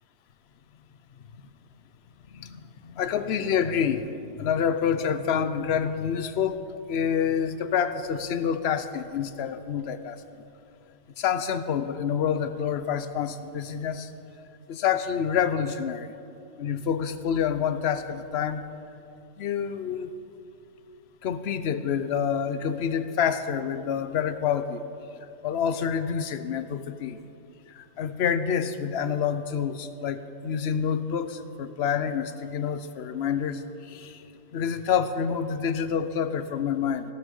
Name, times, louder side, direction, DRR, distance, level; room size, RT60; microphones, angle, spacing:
voice 1, 2.3-6.6 6.9-10.2 11.2-14.1 14.7-16.1 16.6-18.6 19.4-20.1 21.2-24.8 25.4-27.2 27.7-34.2 34.5-37.0, left 7 dB, 60° left, 11 dB, 0.9 m, -27 dB
15.5 x 12.5 x 5.4 m, 2.7 s
omnidirectional pair, 1.4 m